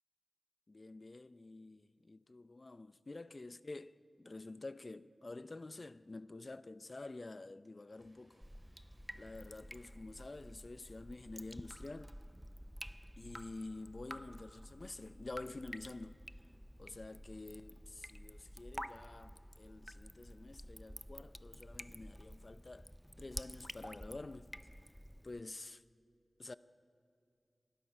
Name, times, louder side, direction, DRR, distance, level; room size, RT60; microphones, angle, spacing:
voice 1, 0.7-8.4 9.1-12.1 13.2-16.2 16.8-22.9 23.2-24.5 25.2-25.8 26.4-26.6, left 2 dB, 45° left, 0.6 m, -49 dB
sound 1, 8.0-10.5 11.9-13.2, right 1 dB, 40° right, 5.5 m, -69 dB
Drip, 8.4-25.4, equal, ahead, 0.4 m, -51 dB
28.0 x 23.5 x 5.7 m
wide cardioid pair, 60°, 0 cm